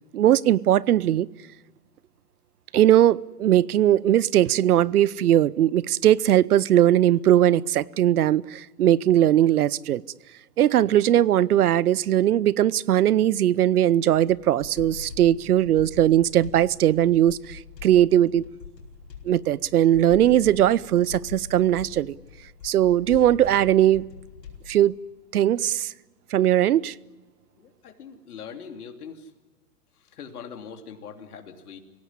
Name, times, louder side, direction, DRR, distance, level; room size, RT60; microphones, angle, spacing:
voice 1, 0.1-1.3 2.7-10.0 10.6-18.4 19.2-22.1 22.6-24.0 24.7-24.9 25.3-25.9 26.3-26.9, right 12 dB, 65° right, 23 dB, 0.8 m, -19 dB
sound 1, 14.1-24.8, left 6 dB, 85° left, 5.0 m, -43 dB
voice 2, 27.6-29.3 29.9-31.8, left 6 dB, 65° left, 5 dB, 3.3 m, -42 dB
26.5 x 17.0 x 9.8 m, 1.2 s
hypercardioid pair, 160°, 48 cm